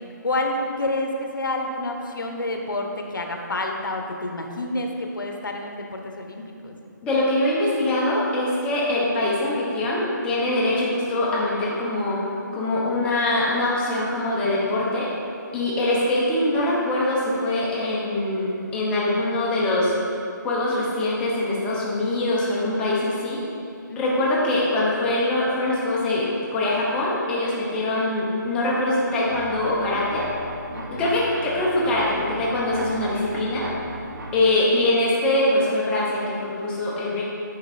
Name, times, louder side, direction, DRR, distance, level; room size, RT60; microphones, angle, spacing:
voice 1, 0.2-6.8 23.9-24.2 30.7-31.1, left 2 dB, 80° left, 3 dB, 0.9 m, -29 dB
voice 2, 7.0-15.1 15.5-19.9 20.4-23.4 24.0-30.3 31.0-33.7 34.3-37.2, left 1 dB, 10° left, -6 dB, 0.8 m, -23 dB
sound 1, 29.3-34.4, right 1 dB, 65° right, 1.0 m, -35 dB
9.8 x 3.8 x 4.1 m, 2.5 s
hypercardioid pair, 165°, 11 cm